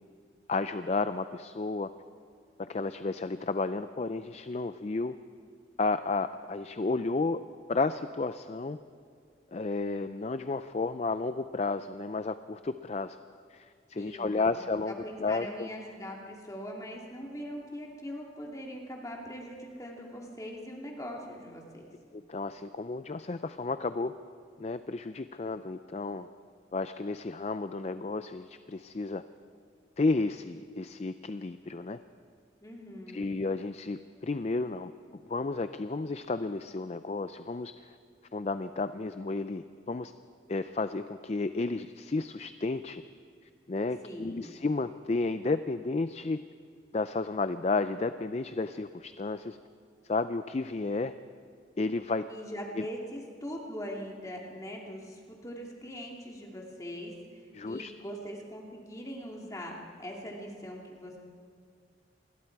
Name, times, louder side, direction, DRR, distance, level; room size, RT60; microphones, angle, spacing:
voice 1, 0.5-1.9 2.7-5.1 5.8-7.4 7.7-8.8 9.5-13.2 13.5-14.9 15.2-15.7 22.1-24.1 24.6-26.3 26.7-29.2 30.0-32.0 33.1-34.9 35.3-38.0 38.3-40.1 40.5-43.0 43.7-46.4 46.9-49.6 50.0-51.1 51.8-52.2 52.8-52.9 57.5-57.9, left 3 dB, 35° left, 11 dB, 0.4 m, -32 dB
voice 2, 13.9-14.6 15.0-21.9 32.6-33.4 44.0-44.5 52.3-61.2, equal, 20° left, -1 dB, 2.6 m, -41 dB
28.0 x 20.5 x 4.7 m, 2.1 s
head